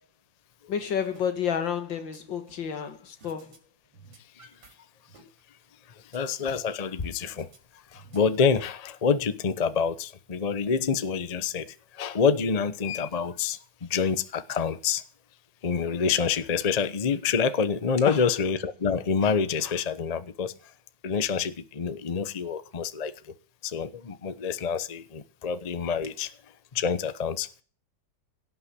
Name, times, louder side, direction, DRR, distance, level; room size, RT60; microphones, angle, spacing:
voice 1, 0.7-3.6 18.1-18.2, left 8 dB, 80° left, 2.3 m, -30 dB
sound 1, 1.1-1.3 1.6-2.7 3.2-3.6 3.9-4.7 5.1-6.7 7.2-7.6 7.9-9.1, right 3 dB, 85° right, 3.7 m, -54 dB
voice 2, 6.1-7.5 7.9-11.6 12.0-15.0 15.6-20.5 21.0-23.1 23.6-26.3 26.7-27.5, left 6 dB, 35° left, 0.6 m, -27 dB
17.0 x 6.1 x 8.1 m
omnidirectional pair, 2.0 m